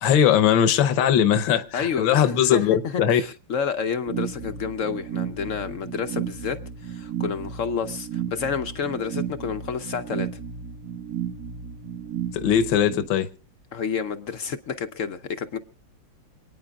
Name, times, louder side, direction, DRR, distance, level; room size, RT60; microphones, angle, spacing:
voice 1, 0.0-3.2 12.3-13.3, left 9 dB, 80° left, 1.6 m, -20 dB
voice 2, 1.7-10.3 13.7-15.6, left 6 dB, 60° left, 0.8 m, -29 dB
sound 1, 4.1-13.1, right 8 dB, 50° right, 1.7 m, -33 dB
27.5 x 9.6 x 2.3 m
omnidirectional pair, 2.1 m